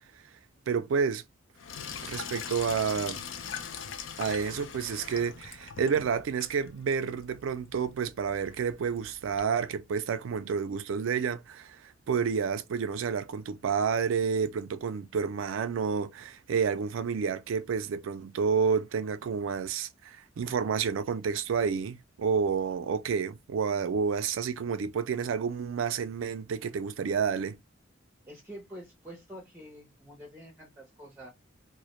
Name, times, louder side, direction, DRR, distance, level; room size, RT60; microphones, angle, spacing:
voice 1, 0.7-1.2 2.0-3.2 4.2-27.6, right 6 dB, 70° right, 0.3 m, -30 dB
Sink (filling or washing), 1.6-9.4, left 7 dB, 65° left, 0.4 m, -42 dB
voice 2, 28.3-31.3, equal, 10° right, 0.5 m, -47 dB
2.1 x 2.0 x 2.8 m
head